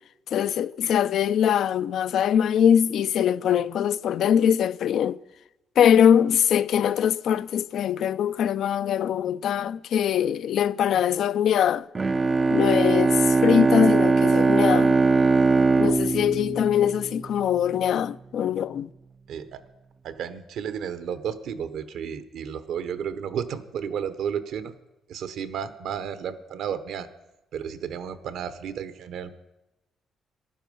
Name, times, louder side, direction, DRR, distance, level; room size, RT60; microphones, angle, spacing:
voice 1, 0.3-5.2 5.8-11.9 12.5-15.0 15.8-18.9, left 9 dB, 70° left, 0.4 m, -22 dB
Bowed string instrument, 11.9-17.5, right 3 dB, 30° right, 0.4 m, -21 dB
voice 2, 19.3-19.6 20.0-24.7 25.1-27.1 27.5-29.3, right 8 dB, 80° right, 1.0 m, -32 dB
14.5 x 11.5 x 5.4 m
cardioid pair, 90°, 0 cm